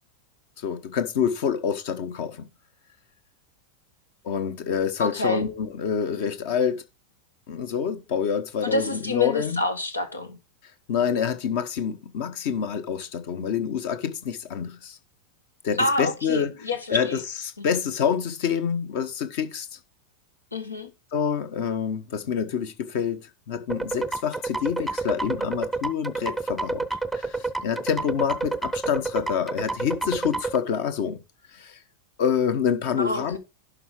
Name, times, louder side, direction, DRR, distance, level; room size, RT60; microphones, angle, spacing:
voice 1, 0.6-2.5 4.2-6.8 7.5-9.6 10.9-15.0 15.6-16.5 16.9-17.2 17.6-19.7 21.1-26.8 27.1-31.2 31.5-31.8 32.2-33.4, left 7 dB, 50° left, 1.3 m, -27 dB
voice 2, 5.0-5.5 8.6-10.4 15.8-17.2 17.6-17.7 20.5-20.9 33.0-33.4, left 2 dB, 80° left, 1.5 m, -27 dB
sound 1, 23.7-30.6, right 3 dB, ahead, 0.7 m, -29 dB
11.5 x 5.1 x 4.8 m
figure-of-eight pair, 90°, 0 cm